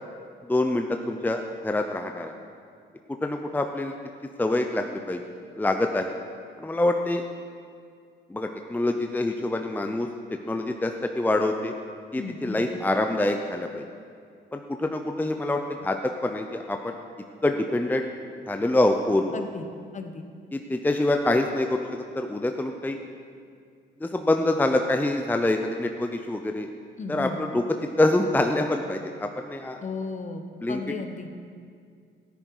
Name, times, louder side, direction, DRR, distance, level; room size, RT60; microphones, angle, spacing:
voice 1, 0.5-2.3 3.2-3.9 4.4-5.2 5.6-6.1 6.6-7.2 8.3-10.1 10.5-11.7 12.1-13.8 14.5-16.9 17.4-18.1 18.5-19.4 20.5-23.0 24.0-26.7 27.1-27.6 28.0-29.8 30.6-30.8, left 2 dB, 10° left, 5 dB, 0.6 m, -25 dB
voice 2, 12.1-12.6 19.3-19.7 19.9-20.3 27.0-27.4 29.8-31.3, left 4 dB, 35° left, 6 dB, 1.1 m, -35 dB
13.0 x 10.0 x 4.8 m, 2.2 s
cardioid pair, 90°, 20 cm